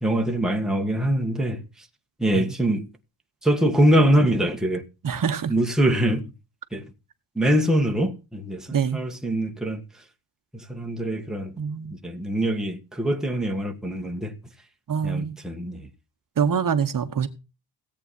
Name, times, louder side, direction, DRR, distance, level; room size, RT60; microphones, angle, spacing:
voice 1, 0.0-1.6 2.2-2.9 3.4-4.8 5.5-6.2 6.7-6.8 7.3-9.8 10.5-11.5 12.0-14.3 15.0-15.9, right 1 dB, ahead, 1.5 m, -23 dB
voice 2, 5.0-5.5 8.7-9.0 11.6-11.9 14.9-15.3 16.4-17.3, right 7 dB, 45° right, 1.2 m, -25 dB
17.5 x 8.5 x 4.2 m
wide cardioid pair, 160°, 45 cm